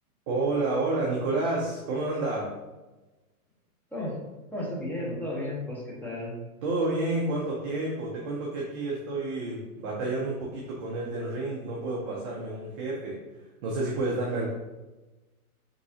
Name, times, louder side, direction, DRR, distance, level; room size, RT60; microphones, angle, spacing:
voice 1, 0.3-2.6 6.6-14.5, right 2 dB, 25° right, -3 dB, 0.4 m, -30 dB
voice 2, 4.5-6.4, left 1 dB, 5° left, -5 dB, 1.0 m, -33 dB
5.2 x 3.2 x 2.7 m, 1.1 s
hypercardioid pair, 135°, 46 cm